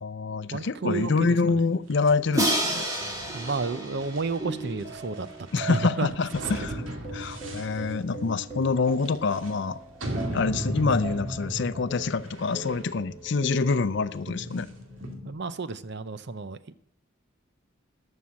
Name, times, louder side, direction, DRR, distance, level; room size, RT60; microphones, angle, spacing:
voice 1, 0.0-2.9 5.5-6.8 7.1-9.8 10.3-14.7, left 4 dB, 60° left, 0.5 m, -26 dB
voice 2, 0.5-1.3 3.3-5.3 5.7-6.1 7.3-7.4 15.2-16.7, right 3 dB, 55° right, 0.7 m, -31 dB
sound 1, 1.9-15.1, right 1 dB, 80° right, 2.3 m, -38 dB
Crash cymbal, 2.3-5.3, equal, 20° right, 2.5 m, -30 dB
sound 2, 3.0-15.3, right 1 dB, 35° right, 2.5 m, -41 dB
12.5 x 6.4 x 7.5 m
head